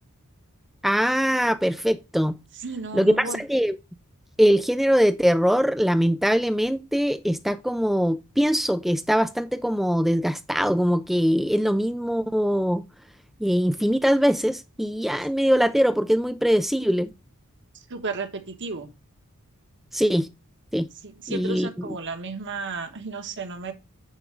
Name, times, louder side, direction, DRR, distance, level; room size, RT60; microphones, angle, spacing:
voice 1, 0.8-2.4 2.9-3.8 4.4-12.8 13.4-17.1 19.9-20.3 20.7-20.9 21.3-21.9, equal, ahead, 0.3 m, -22 dB
voice 2, 2.6-3.4 17.9-18.9 21.0-23.7, right 3 dB, 55° right, 1.3 m, -33 dB
10.0 x 3.6 x 4.9 m
head